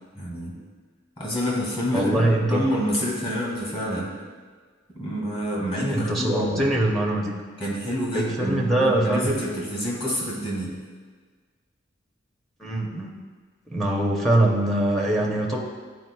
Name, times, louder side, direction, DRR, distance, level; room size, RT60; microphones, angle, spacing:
voice 1, 0.2-0.6 1.2-4.1 4.9-6.7 7.6-10.8, equal, 25° left, -3 dB, 1.8 m, -27 dB
voice 2, 1.9-2.6 5.9-7.3 8.1-9.3 12.6-13.1 13.7-15.6, right 1 dB, ahead, -2 dB, 0.6 m, -23 dB
10.5 x 4.5 x 2.2 m, 1.5 s
head